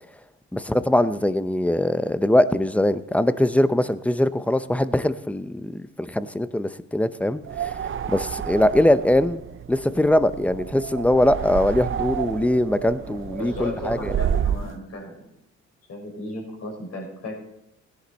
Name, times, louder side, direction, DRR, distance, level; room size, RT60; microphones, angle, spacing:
voice 1, 0.5-7.7 8.1-9.4 9.7-14.1, left 1 dB, 5° left, 13 dB, 0.6 m, -22 dB
sound 1, 7.4-14.7, right 8 dB, 40° right, 0.6 m, -30 dB
voice 2, 13.4-15.3 15.9-17.4, left 2 dB, 55° left, 0 dB, 5.8 m, -35 dB
17.0 x 10.5 x 4.1 m, 0.82 s
cardioid pair, 90°, 30 cm